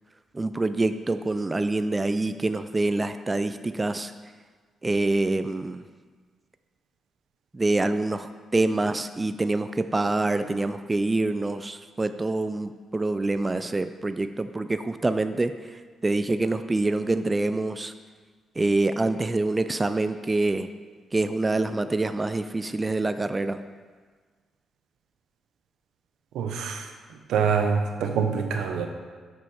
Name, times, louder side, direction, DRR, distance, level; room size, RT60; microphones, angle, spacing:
voice 1, 0.3-4.1 4.8-5.8 7.5-15.5 16.0-17.9 18.6-20.7 21.1-23.6, right 2 dB, 20° right, 10 dB, 0.3 m, -26 dB
voice 2, 26.3-26.8 27.3-28.9, right 6 dB, 90° right, 5 dB, 0.8 m, -25 dB
6.3 x 6.1 x 5.6 m, 1.5 s
cardioid pair, 85°, 0 cm